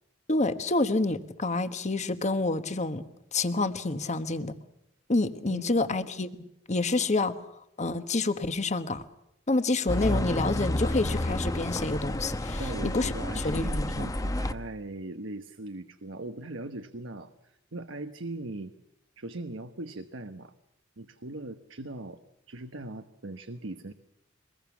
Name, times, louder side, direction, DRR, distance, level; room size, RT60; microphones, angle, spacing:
voice 1, 0.3-3.0 3.3-4.6 5.1-9.0 9.5-14.1, left 2 dB, 40° left, 10 dB, 1.3 m, -28 dB
voice 2, 5.5-5.8 12.6-18.7 19.2-20.5 21.0-22.2 22.5-23.9, right 2 dB, 85° right, 8 dB, 1.1 m, -40 dB
sound 1, 9.9-14.5, left 1 dB, 20° left, 0.9 m, -30 dB
24.0 x 21.0 x 7.2 m, 0.83 s
head